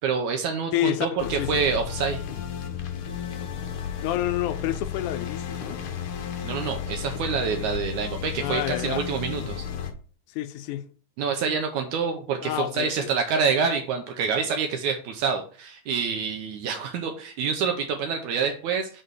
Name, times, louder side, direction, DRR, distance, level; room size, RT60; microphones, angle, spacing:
voice 1, 0.0-2.2 6.4-9.7 11.2-19.0, right 6 dB, 75° right, 2.2 m, -27 dB
voice 2, 0.7-1.5 3.4-3.5 4.0-5.8 8.4-9.1 10.3-10.9 12.4-13.1, left 13 dB, 80° left, 2.0 m, -29 dB
sound 1, 1.2-9.9, left 8 dB, 65° left, 1.3 m, -33 dB
6.7 x 4.1 x 6.2 m
omnidirectional pair, 3.6 m